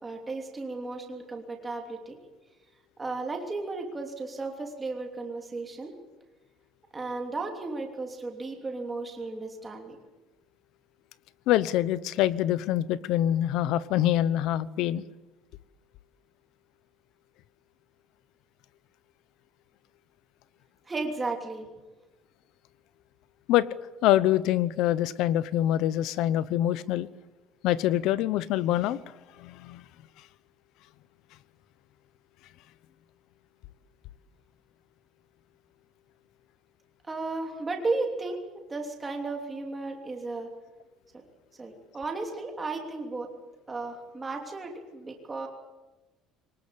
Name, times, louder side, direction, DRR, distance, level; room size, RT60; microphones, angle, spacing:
voice 1, 0.0-2.2 3.0-5.9 6.9-10.0 20.9-21.7 37.1-38.4 38.7-40.5 41.6-43.3 43.7-45.5, right 3 dB, 15° right, 2 dB, 3.1 m, -34 dB
voice 2, 11.5-15.0 23.5-23.7 24.0-27.1 27.6-29.0 29.4-29.8, left 13 dB, 65° left, 18 dB, 0.9 m, -25 dB
23.0 x 20.0 x 8.4 m, 1.1 s
cardioid pair, 175°, 0 cm